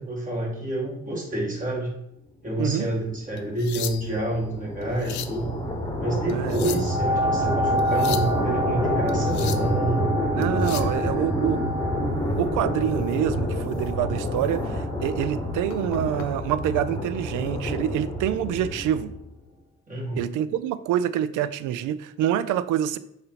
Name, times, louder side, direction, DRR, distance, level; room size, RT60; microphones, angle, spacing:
voice 1, 0.0-1.9 2.4-5.5 6.0-10.0 10.7-11.4 19.9-20.3, right 1 dB, 25° right, -2 dB, 2.3 m, -28 dB
voice 2, 2.6-2.9 6.3-6.6 10.3-11.6 12.4-19.1 20.2-23.0, right 11 dB, 90° right, 15 dB, 0.5 m, -26 dB
sound 1, 3.0-19.3, left 1 dB, 15° left, 1.2 m, -28 dB
sound 2, 3.4-4.3 4.8-5.4 6.3-7.0 7.8-8.3 9.1-9.7 10.4-11.0 13.0-13.2 13.7-13.9 14.4-14.5 15.7-16.3 17.4-17.6, left 11 dB, 70° left, 0.6 m, -37 dB
sound 3, 6.6-15.9 16.5-16.6, equal, 10° right, 0.8 m, -30 dB
6.8 x 2.7 x 5.7 m, 0.80 s
cardioid pair, 90°, 30 cm